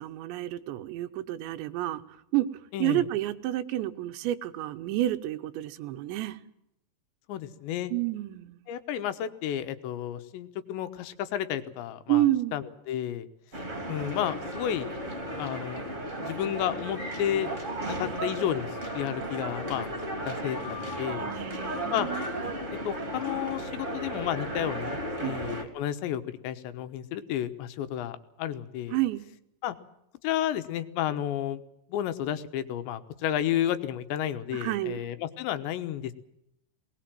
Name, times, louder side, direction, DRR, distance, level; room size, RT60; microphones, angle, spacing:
voice 1, 0.0-2.0 2.3-2.5 2.8-6.4 7.9-8.6 12.1-12.6 21.2-22.3 25.2-25.4 28.9-29.2 34.5-35.0, right 15 dB, 80° right, 11 dB, 3.2 m, -29 dB
voice 2, 2.7-3.0 7.3-7.9 8.7-12.2 12.5-13.3 13.9-14.9 15.3-15.8 16.2-17.5 17.8-19.9 20.3-21.3 21.9-22.1 22.7-29.0 29.6-29.8 30.2-31.6 31.9-36.1, left 11 dB, 80° left, 10 dB, 3.3 m, -32 dB
sound 1, 13.5-25.6, right 1 dB, 20° right, 2.5 m, -34 dB
20.5 x 19.5 x 7.7 m, 0.80 s
omnidirectional pair, 5.2 m